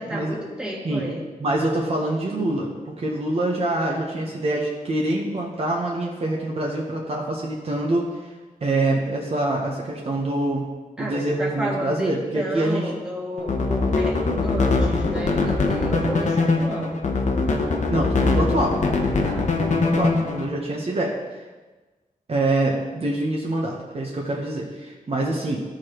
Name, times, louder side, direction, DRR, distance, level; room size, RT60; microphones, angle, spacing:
voice 1, 0.0-1.2 11.0-17.0 19.3-19.5, equal, 5° right, -4 dB, 1.6 m, -31 dB
voice 2, 1.4-8.3 8.6-10.7 11.0-12.9 17.9-18.8 19.7-21.1 22.3-25.6, right 1 dB, 45° right, -2 dB, 1.0 m, -25 dB
sound 1, 13.4-20.5, left 3 dB, 55° left, 0.8 m, -22 dB
14.0 x 4.9 x 3.0 m, 1.3 s
wide cardioid pair, 175°, 14 cm